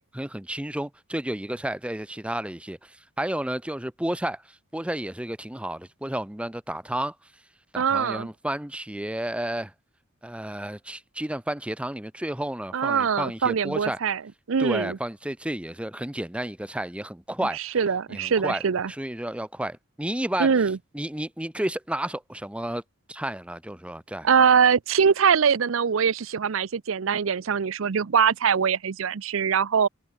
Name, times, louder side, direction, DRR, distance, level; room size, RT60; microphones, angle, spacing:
voice 1, 0.1-7.1 7.7-9.7 10.2-14.0 14.6-17.8 18.1-18.6 18.9-20.5 20.9-22.8 23.1-24.3, right 1 dB, 5° right, 0.8 m, -31 dB
voice 2, 7.7-8.3 12.7-14.2 14.5-15.0 17.5-18.9 20.4-20.8 24.2-29.9, right 6 dB, 70° right, 0.5 m, -22 dB
head